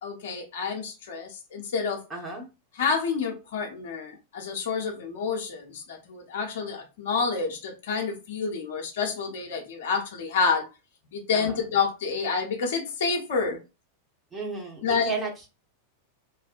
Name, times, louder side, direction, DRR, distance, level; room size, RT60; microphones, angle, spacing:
voice 1, 0.0-2.0 2.8-10.7 11.1-13.6 14.8-15.1, left 5 dB, 55° left, 0.6 m, -28 dB
voice 2, 2.1-2.5 11.3-11.6 14.3-15.5, right 3 dB, 15° right, 0.9 m, -33 dB
2.4 x 2.1 x 2.4 m
figure-of-eight pair, 90°, 0 cm